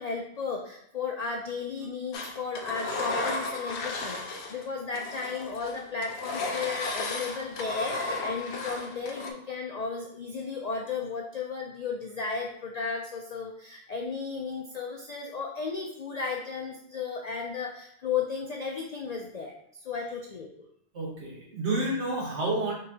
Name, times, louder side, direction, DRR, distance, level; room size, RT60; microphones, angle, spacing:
voice 1, 0.0-20.5, left 5 dB, 90° left, 1 dB, 0.3 m, -34 dB
Engine, 2.1-4.6 4.9-9.3, left 3 dB, 65° left, 0.9 m, -34 dB
voice 2, 20.9-22.7, right 2 dB, 60° right, -4 dB, 1.6 m, -29 dB
5.3 x 3.1 x 2.7 m, 0.70 s
omnidirectional pair, 1.3 m